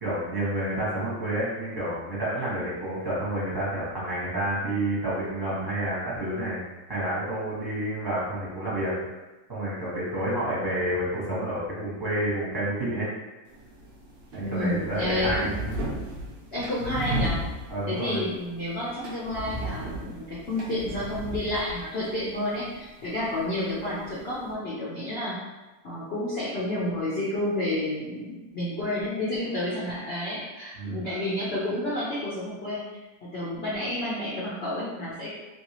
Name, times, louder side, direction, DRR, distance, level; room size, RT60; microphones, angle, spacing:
voice 1, 0.0-6.6 6.9-9.1 9.5-13.1 14.3-15.5 17.7-18.2 30.7-31.1, right 1 dB, 15° right, -8 dB, 0.9 m, -29 dB
sound 1, 13.5-24.5, right 1 dB, 85° right, 0.5 m, -36 dB
voice 2, 14.4-15.7 16.5-17.4 17.9-25.4 25.8-32.8 33.3-35.5, left 1 dB, 75° left, -8 dB, 0.5 m, -30 dB
3.2 x 2.7 x 2.9 m, 1.1 s
omnidirectional pair, 1.9 m